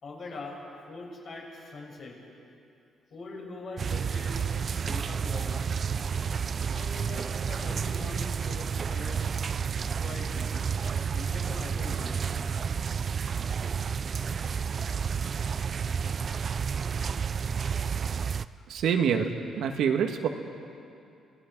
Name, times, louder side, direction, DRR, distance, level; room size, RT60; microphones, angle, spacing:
voice 1, 0.0-2.2 3.1-5.7 6.7-9.4 10.0-10.7 11.1-12.4, left 3 dB, 55° left, -2 dB, 6.3 m, -42 dB
sound 1, 3.8-18.5, right 6 dB, 45° right, 0.5 m, -30 dB
voice 2, 18.7-20.3, right 7 dB, 75° right, 5 dB, 1.6 m, -26 dB
28.0 x 18.0 x 6.1 m, 2.6 s
cardioid pair, 90°, 0 cm